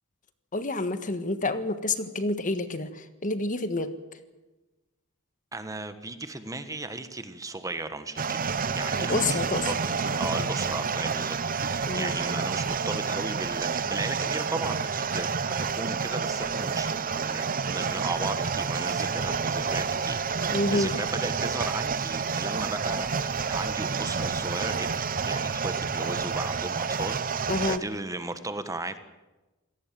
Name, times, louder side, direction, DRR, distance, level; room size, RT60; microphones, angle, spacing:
voice 1, 0.5-3.9 9.0-9.7 11.9-12.1 20.5-20.9 27.5-27.8, left 2 dB, 40° left, 10 dB, 1.6 m, -28 dB
voice 2, 5.5-9.7 10.2-29.0, right 2 dB, 15° right, 10 dB, 1.3 m, -36 dB
sound 1, 8.2-27.8, right 5 dB, 40° right, 0.9 m, -29 dB
27.0 x 18.5 x 7.6 m, 1.1 s
head